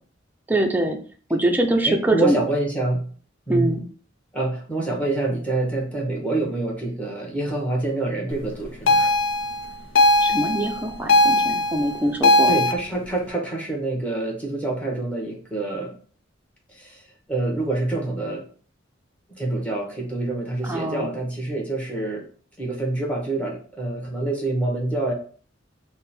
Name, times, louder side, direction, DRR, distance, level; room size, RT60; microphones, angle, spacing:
voice 1, 0.5-1.0 1.3-2.4 3.5-3.8 10.2-12.6 20.6-21.1, right 1 dB, 10° right, 3 dB, 0.4 m, -23 dB
voice 2, 1.9-3.1 3.5-3.8 4.3-9.1 12.5-16.0 16.7-18.4 19.3-22.2 22.6-25.1, right 2 dB, 5° left, -1 dB, 0.9 m, -26 dB
sound 1, 8.9-12.7, left 1 dB, 85° left, 0.5 m, -19 dB
3.5 x 2.1 x 4.2 m, 0.43 s
head